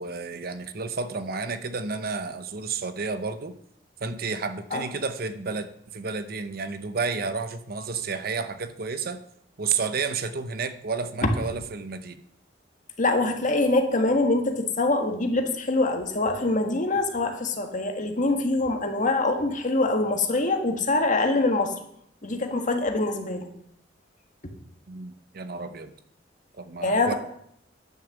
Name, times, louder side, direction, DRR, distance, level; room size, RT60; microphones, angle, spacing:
voice 1, 0.0-3.5 4.0-9.2 9.6-12.2 24.9-25.9 26.6-27.1, right 4 dB, 55° right, 11 dB, 0.8 m, -31 dB
voice 2, 13.0-21.7 22.2-23.5 26.8-27.1, left 2 dB, 45° left, 5 dB, 1.5 m, -24 dB
10.5 x 6.6 x 7.2 m, 0.71 s
head